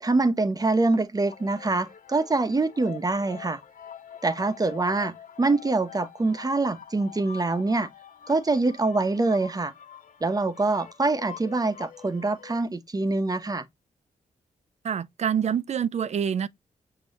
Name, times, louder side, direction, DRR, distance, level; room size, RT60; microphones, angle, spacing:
voice 1, 0.0-3.6 4.2-7.9 8.3-9.7 10.2-13.6, right 3 dB, 25° right, 0.9 m, -25 dB
sound 1, 1.2-12.6, left 9 dB, 70° left, 1.0 m, -46 dB
voice 2, 14.8-16.5, right 8 dB, 55° right, 0.5 m, -26 dB
6.1 x 2.9 x 2.5 m
cardioid pair, 60°, 14 cm